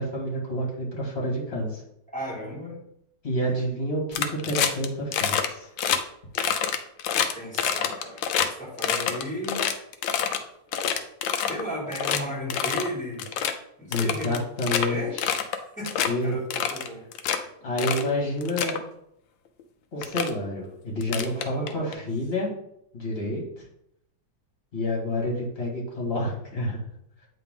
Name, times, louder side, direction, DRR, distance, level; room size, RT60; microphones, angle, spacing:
voice 1, 0.0-1.8 3.2-5.7 13.9-15.4 16.1-16.3 17.6-18.8 19.9-22.5 22.9-23.6 24.7-26.8, left 1 dB, 35° left, -2 dB, 2.1 m, -29 dB
voice 2, 2.1-2.8 7.3-9.6 11.4-13.3 13.8-14.4 14.9-15.2 15.5-17.0 21.2-22.0, equal, 5° left, -6 dB, 2.2 m, -35 dB
sound 1, 4.1-4.9 5.1-5.5 5.8-6.0 6.3-8.5 8.8-10.4 10.7-11.6 11.9-12.2 12.5-12.9 13.2-13.5 13.9-14.9 15.2-15.6 15.8-16.1 16.5-17.4 17.8-18.1 18.4-18.8 19.6-19.7 20.0-20.3 21.0-21.9, left 8 dB, 85° left, 1.4 m, -26 dB
8.4 x 3.6 x 3.7 m, 0.76 s
omnidirectional pair, 2.0 m